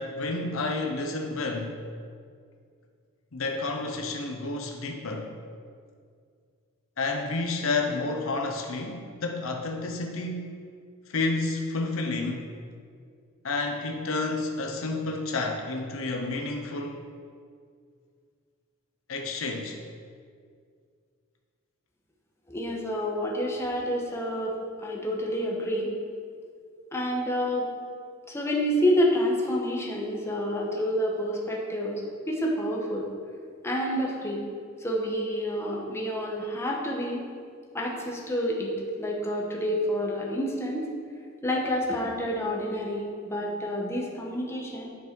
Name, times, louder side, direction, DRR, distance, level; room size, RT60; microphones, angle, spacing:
voice 1, 0.0-1.8 3.3-5.3 7.0-10.5 11.1-12.5 13.4-17.0 19.1-19.8, left 3 dB, 70° left, 3 dB, 0.8 m, -30 dB
voice 2, 22.5-24.5 24.8-25.9 26.9-27.7 28.3-33.1 33.6-34.5 34.8-37.3 37.7-38.7 39.0-40.9 41.4-44.9, equal, 15° left, -3 dB, 1.2 m, -28 dB
10.0 x 5.6 x 4.6 m, 2.2 s
head